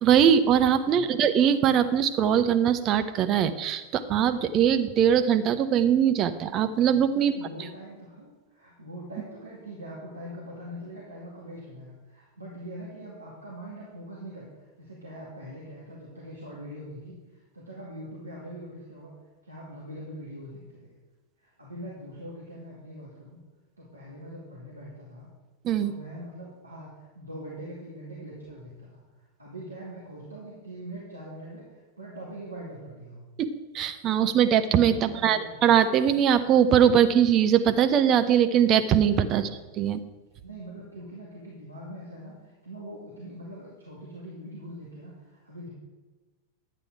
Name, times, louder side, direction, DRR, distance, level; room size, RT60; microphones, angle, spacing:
voice 1, 0.0-7.4 25.6-25.9 33.4-33.5 33.7-39.5 39.8-40.0, right 9 dB, 35° right, 9 dB, 0.8 m, -21 dB
voice 2, 0.9-1.2 7.2-14.5 14.8-17.2 17.5-19.1 19.4-20.9 21.4-23.4 23.8-25.3 25.8-28.9 29.4-33.2 35.0-35.7 39.4-39.5 40.4-45.7, right 1 dB, 80° right, -5 dB, 2.3 m, -42 dB
11.5 x 8.8 x 4.8 m, 1.3 s
figure-of-eight pair, 90°, 0 cm